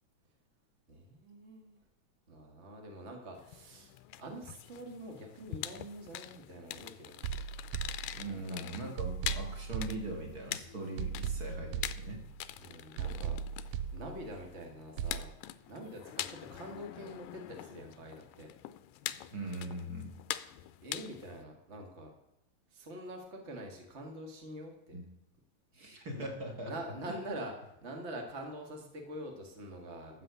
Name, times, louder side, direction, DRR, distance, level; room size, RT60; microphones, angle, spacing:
voice 1, 0.9-1.8 2.3-7.2 8.3-8.6 12.6-15.3 15.7-18.5 20.8-22.1 22.7-25.0 26.1-26.3 26.6-30.2, right 1 dB, 50° right, 2 dB, 0.7 m, -45 dB
sound 1, 3.4-21.4, left 14 dB, 80° left, 2.1 m, -44 dB
sound 2, 7.2-8.5 9.0-10.5 11.0-12.5 13.0-14.5 15.0-15.2, right 8 dB, 80° right, 1.9 m, -38 dB
voice 2, 8.1-12.2 19.3-20.1 24.9-25.0 25.7-26.7, right 1 dB, 30° right, 2 dB, 2.0 m, -40 dB
13.5 x 7.6 x 6.8 m, 0.85 s
omnidirectional pair, 4.1 m